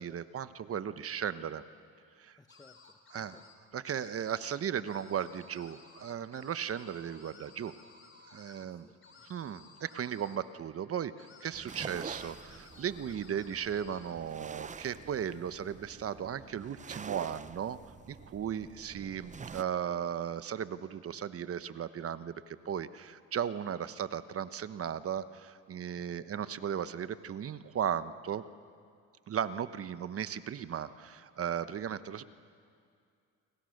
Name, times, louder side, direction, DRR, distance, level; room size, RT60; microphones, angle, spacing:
voice 1, 0.0-1.6 2.2-2.4 3.1-3.4 3.7-7.7 8.3-8.9 9.3-17.8 18.1-28.4 29.3-32.2, right 8 dB, 45° right, 13 dB, 1.1 m, -36 dB
voice 2, 2.4-3.5 8.6-9.5 26.0-26.4, left 3 dB, 10° left, 9 dB, 1.0 m, -62 dB
sound 1, 2.5-3.5 3.8-4.6 4.8-8.6 9.0-10.4 11.2-14.1, left 5 dB, 35° left, 4.1 m, -57 dB
sound 2, 11.5-19.6, right 5 dB, 20° right, 0.8 m, -47 dB
29.0 x 23.5 x 6.6 m, 2.3 s
supercardioid pair, 80°, 33 cm